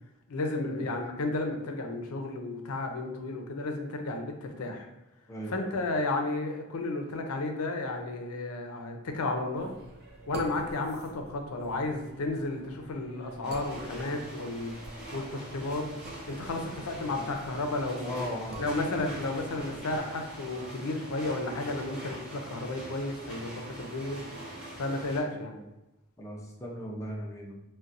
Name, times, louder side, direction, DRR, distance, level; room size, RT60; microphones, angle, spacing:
voice 1, 0.3-4.9 5.5-9.7 10.3-14.7 15.1-15.8 16.3-18.2 18.6-24.2 24.7-25.6, left 2 dB, 85° left, 4 dB, 0.5 m, -33 dB
voice 2, 5.3-5.8 18.0-18.6 26.2-27.6, equal, 15° left, -2 dB, 0.4 m, -38 dB
sound 1, 9.6-20.0, right 2 dB, 45° right, 0.4 m, -48 dB
sound 2, 13.4-25.2, right 1 dB, 5° right, 0.9 m, -43 dB
3.9 x 2.2 x 2.5 m, 0.94 s
head